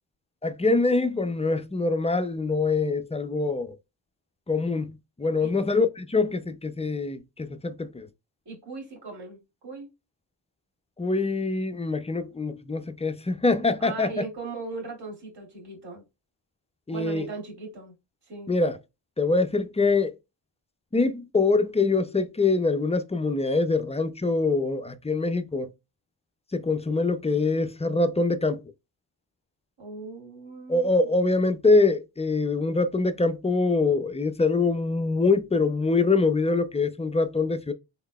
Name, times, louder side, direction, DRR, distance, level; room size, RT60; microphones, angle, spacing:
voice 1, 0.4-3.8 4.5-4.9 5.2-8.1 11.0-14.1 16.9-17.3 18.5-18.8 19.2-20.1 20.9-25.7 26.5-28.6 30.7-37.7, left 3 dB, 15° left, 0.3 m, -24 dB
voice 2, 8.5-9.9 13.8-16.0 16.9-17.9 18.2-18.5 29.8-30.9, right 3 dB, 55° right, 2.3 m, -38 dB
3.8 x 3.5 x 2.3 m
wide cardioid pair, 90°, 45 cm